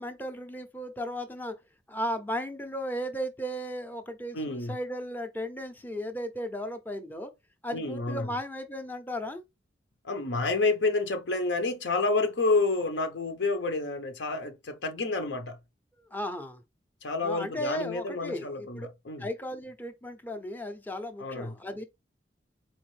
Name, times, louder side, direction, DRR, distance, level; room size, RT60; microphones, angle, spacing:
voice 1, 0.0-1.5 1.9-7.3 7.6-9.4 16.1-16.6 17.2-18.9 19.2-21.8, equal, 10° left, 0.5 m, -35 dB
voice 2, 4.3-4.8 7.7-8.3 10.0-15.6 17.0-19.3 21.2-21.5, left 3 dB, 80° left, 0.8 m, -29 dB
4.3 x 3.5 x 3.2 m
head